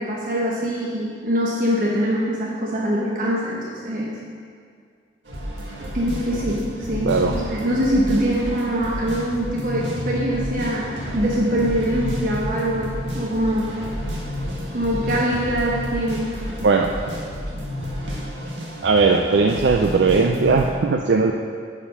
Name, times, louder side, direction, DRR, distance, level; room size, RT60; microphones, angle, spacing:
voice 1, 0.0-4.2 5.9-13.8 14.7-16.3, equal, 50° right, -4 dB, 1.1 m, -23 dB
sound 1, 5.3-20.7, equal, 85° right, 1.7 m, -30 dB
voice 2, 7.0-7.4 16.6-16.9 18.8-21.3, right 4 dB, 70° right, 3 dB, 0.4 m, -18 dB
10.0 x 5.2 x 5.5 m, 2.1 s
head